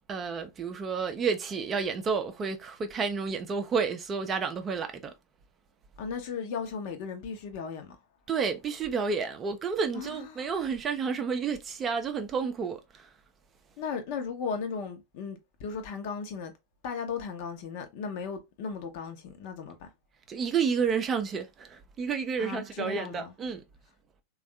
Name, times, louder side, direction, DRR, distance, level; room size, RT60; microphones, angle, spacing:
voice 1, 0.1-5.1 8.3-13.1 20.3-23.6, right 5 dB, 25° right, 0.5 m, -30 dB
voice 2, 6.0-8.0 9.9-10.5 13.8-16.5 16.8-19.9 22.4-23.3, left 5 dB, 45° left, 0.8 m, -36 dB
3.5 x 2.4 x 3.2 m
figure-of-eight pair, 90°, 0 cm